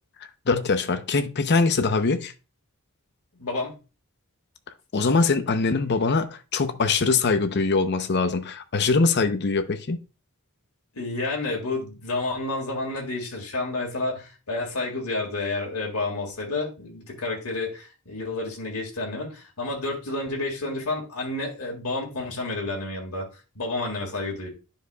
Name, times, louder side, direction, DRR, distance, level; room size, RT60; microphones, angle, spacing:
voice 1, 0.5-2.3 4.9-10.0, left 4 dB, 50° left, 0.6 m, -22 dB
voice 2, 3.3-3.8 10.9-23.3 23.6-24.5, left 2 dB, 80° left, 1.9 m, -30 dB
10.5 x 4.9 x 2.2 m
head